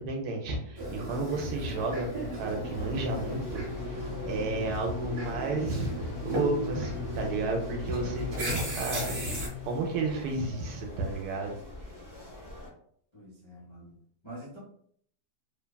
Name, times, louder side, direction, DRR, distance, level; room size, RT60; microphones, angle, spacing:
voice 1, 0.0-5.9 6.2-9.0 9.3-11.5, right 3 dB, 70° right, 2 dB, 1.0 m, -32 dB
sound 1, 0.8-9.5, right 1 dB, 50° right, 0.9 m, -35 dB
sound 2, 2.7-12.7, left 1 dB, 25° right, 0.5 m, -46 dB
sound 3, 3.0-10.2, left 13 dB, 70° left, 0.9 m, -43 dB
voice 2, 13.1-13.9 14.2-14.6, right 1 dB, 45° left, -7 dB, 0.3 m, -46 dB
3.0 x 2.2 x 2.2 m, 0.64 s
omnidirectional pair, 1.8 m